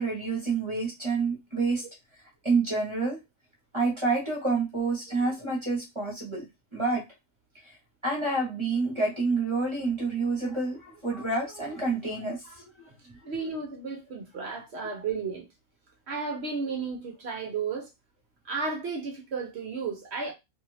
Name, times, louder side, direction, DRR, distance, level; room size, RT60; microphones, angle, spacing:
voice 1, 0.0-1.8 2.4-3.2 3.7-6.4 6.7-7.0 8.0-12.7, right 3 dB, 25° right, 0.8 m, -28 dB
voice 2, 13.3-15.5 16.1-17.9 18.4-20.3, right 4 dB, 60° right, 0.7 m, -33 dB
2.6 x 2.5 x 3.1 m
omnidirectional pair, 1.6 m